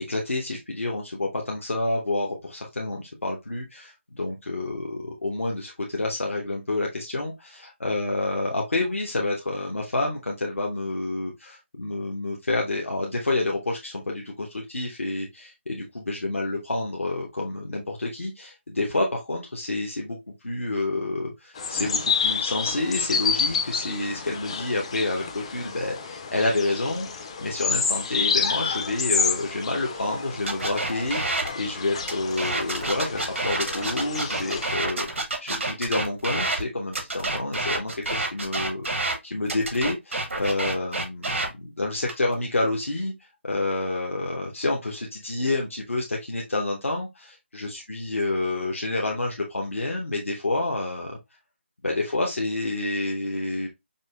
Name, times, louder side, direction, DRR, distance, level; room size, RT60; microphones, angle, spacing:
voice 1, 0.0-20.2 20.4-35.1 35.4-43.1 43.4-51.2 51.8-53.7, left 2 dB, 85° left, -1 dB, 0.7 m, -29 dB
sound 1, 21.6-34.8, left 5 dB, 25° left, 0.3 m, -29 dB
sound 2, 30.5-31.5 32.0-36.6 36.9-39.1 39.5-41.5 42.0-42.3, right 2 dB, 80° right, 1.0 m, -28 dB
5.2 x 2.1 x 2.3 m, 0.22 s
figure-of-eight pair, 160°, 7 cm